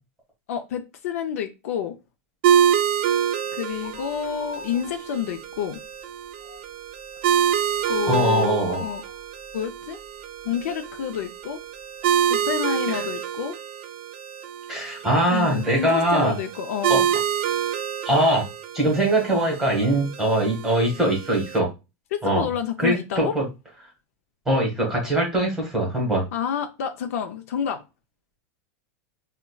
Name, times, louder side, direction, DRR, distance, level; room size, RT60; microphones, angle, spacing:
voice 1, 0.5-1.9 3.5-5.8 7.9-9.0 9.5-10.0 10.4-11.6 12.3-13.6 15.3-17.1 22.1-23.3 26.3-27.8, left 9 dB, 65° left, 0.5 m, -29 dB
sound 1, 2.4-21.6, right 9 dB, 45° right, 0.4 m, -27 dB
sound 2, 3.7-5.3 5.7-5.8 6.2-10.6 11.1-11.2 12.0-12.1 12.3-12.4, left 3 dB, 40° left, 1.5 m, -40 dB
voice 2, 8.1-8.8 12.9-13.0 14.7-16.4 16.9-17.0 18.0-18.4 18.7-21.7 22.2-22.4 22.8-23.5 24.5-26.2, right 1 dB, 5° right, 1.0 m, -22 dB
4.9 x 2.2 x 2.2 m
supercardioid pair, 175°, 8 cm